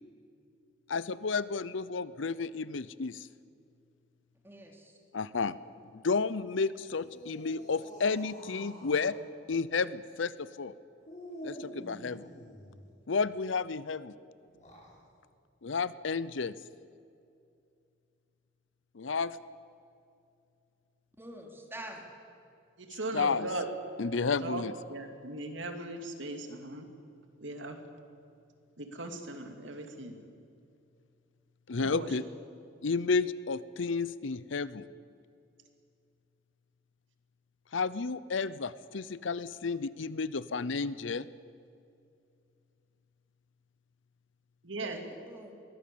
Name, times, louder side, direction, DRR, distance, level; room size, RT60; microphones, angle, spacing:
voice 1, 0.9-3.3 5.1-5.6 5.9-9.2 9.5-10.7 11.4-12.3 13.1-14.1 15.6-16.5 18.9-19.4 23.1-23.5 24.0-24.7 31.7-32.2 32.8-34.9 37.7-41.3, left 4 dB, 75° left, 17 dB, 0.7 m, -31 dB
voice 2, 4.4-4.9 21.2-22.0 44.8-45.5, right 1 dB, 10° right, 1 dB, 3.1 m, -46 dB
sound 1, 6.9-9.2 11.0-12.8 14.4-15.0, equal, 40° left, 7.6 m, -47 dB
voice 3, 22.8-23.6 24.4-24.6 24.9-26.9 27.4-27.8 28.8-30.2 31.8-32.1 44.6-45.0, right 2 dB, 70° right, 5 dB, 2.5 m, -38 dB
23.0 x 17.5 x 8.6 m, 2.4 s
head